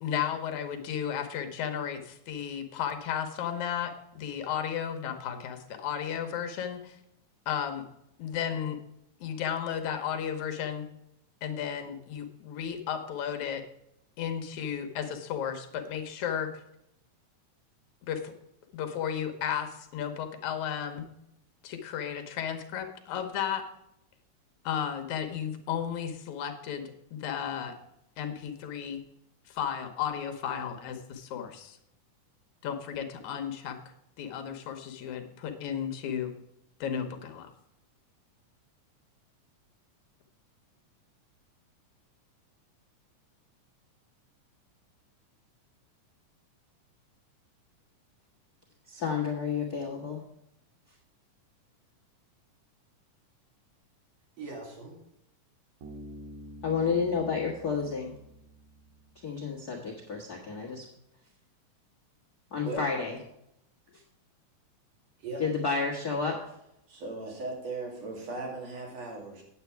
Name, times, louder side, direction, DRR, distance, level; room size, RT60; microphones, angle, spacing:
voice 1, 0.0-7.0 7.5-7.8 8.2-8.8 9.2-10.9 11.4-13.6 14.2-16.5 18.1-18.3 18.7-21.1 21.6-23.6 24.6-27.8 28.2-29.0 29.5-31.8 32.6-33.8 34.2-36.3 36.8-37.5, left 8 dB, 70° left, 6 dB, 2.3 m, -34 dB
voice 2, 48.9-50.2 56.6-58.1 59.2-60.9 62.5-63.2 65.4-66.4, left 5 dB, 45° left, -4 dB, 1.3 m, -30 dB
voice 3, 54.4-55.0 62.6-62.9 65.2-65.5 66.9-69.4, right 3 dB, 55° right, -1 dB, 3.4 m, -38 dB
Bass guitar, 55.8-59.4, equal, 90° right, 2.9 m, -48 dB
9.3 x 8.2 x 4.6 m, 0.79 s
omnidirectional pair, 3.7 m